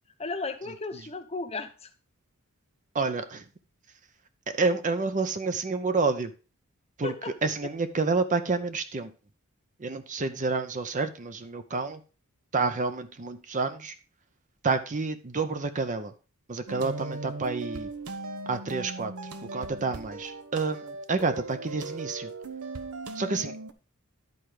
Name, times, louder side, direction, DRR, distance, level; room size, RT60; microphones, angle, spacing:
voice 1, 0.2-1.9 7.0-7.4, left 3 dB, 30° left, 8 dB, 0.8 m, -35 dB
voice 2, 2.9-3.4 4.5-6.3 7.0-9.1 9.8-12.0 12.5-13.9 14.6-16.1 16.5-17.9 18.5-19.1 19.5-22.3 23.1-23.5, right 4 dB, 35° right, 10 dB, 0.6 m, -29 dB
sound 1, 16.7-23.7, right 2 dB, 80° right, 0.9 m, -38 dB
11.0 x 4.5 x 4.8 m, 0.34 s
head